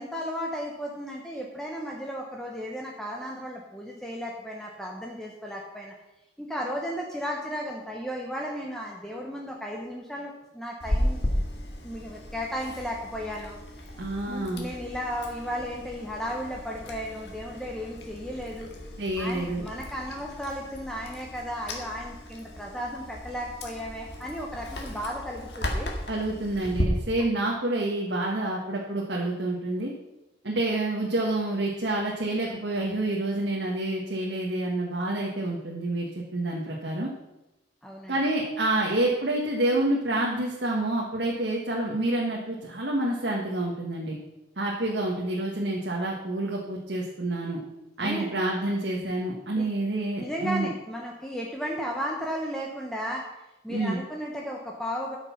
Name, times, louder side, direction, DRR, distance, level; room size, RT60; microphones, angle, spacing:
voice 1, 0.0-5.9 6.4-11.2 11.8-13.6 14.3-18.7 19.2-25.9 37.8-38.2 48.0-48.3 49.5-49.7 50.2-53.3 53.6-55.2, equal, 5° left, -1 dB, 1.0 m, -34 dB
Chewing mastication, 10.8-26.8, left 1 dB, 65° left, 1.9 m, -35 dB
voice 2, 14.0-14.7 19.0-19.6 26.1-29.9 30.4-37.1 38.1-44.2 44.6-47.6 48.0-50.7 53.7-54.0, right 1 dB, 70° right, -2 dB, 1.5 m, -28 dB
13.0 x 6.6 x 5.8 m, 0.96 s
head